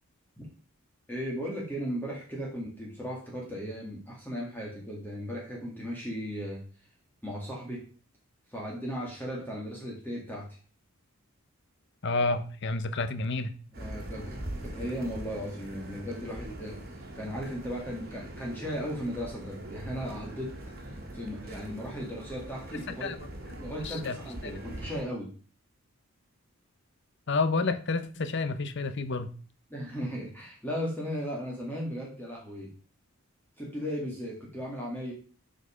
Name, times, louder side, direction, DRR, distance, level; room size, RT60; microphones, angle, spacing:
voice 1, 1.1-6.6 7.2-7.8 8.5-10.5 13.8-16.8 17.1-20.5 20.8-23.1 23.6-25.3 29.7-32.7 33.6-35.1, equal, 10° left, -4 dB, 2.0 m, -36 dB
voice 2, 12.0-13.5 23.0-23.3 23.8-24.2 27.3-29.3, left 3 dB, 55° left, 11 dB, 0.7 m, -29 dB
sound 1, 13.7-25.0, right 1 dB, 45° right, 1.9 m, -42 dB
8.2 x 5.3 x 5.0 m, 0.41 s
head